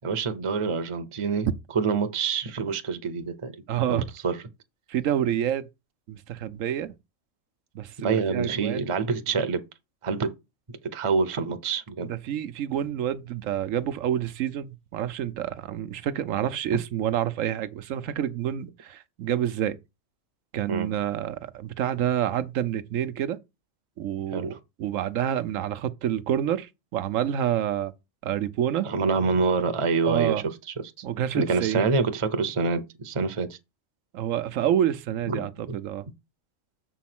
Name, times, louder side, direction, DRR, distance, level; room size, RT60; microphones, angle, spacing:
voice 1, 0.0-1.5 1.7-3.5 3.9-4.4 8.0-9.6 10.0-10.3 10.8-12.1 20.7-20.9 24.3-24.6 28.8-30.5 31.0-31.1 31.3-33.6 35.3-35.8, right 4 dB, 30° right, 0.7 m, -26 dB
voice 2, 3.7-4.0 4.9-5.7 6.1-6.9 7.7-8.8 12.1-19.8 20.5-23.4 24.0-24.5 24.8-27.9 28.2-28.9 30.0-30.4 31.0-31.8 34.1-36.1, right 10 dB, 80° right, 1.1 m, -28 dB
7.2 x 4.6 x 6.0 m
omnidirectional pair, 1.3 m